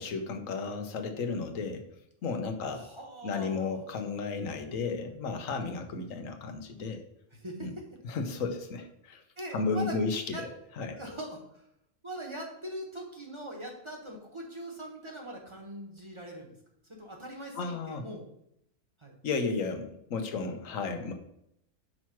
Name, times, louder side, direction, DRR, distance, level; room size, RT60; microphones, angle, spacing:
voice 1, 0.0-1.8 2.2-2.9 3.2-7.0 7.6-7.7 8.0-9.2 9.5-10.5 10.8-11.0 17.5-18.1 19.2-21.1, left 4 dB, 85° left, 5 dB, 1.3 m, -33 dB
voice 2, 2.8-3.8 7.3-7.8 9.4-9.9 10.3-10.4 10.9-11.4 12.0-16.5 16.9-18.2 19.0-19.1, right 1 dB, 25° right, 0 dB, 1.2 m, -41 dB
5.6 x 4.6 x 5.8 m, 0.76 s
omnidirectional pair, 1.3 m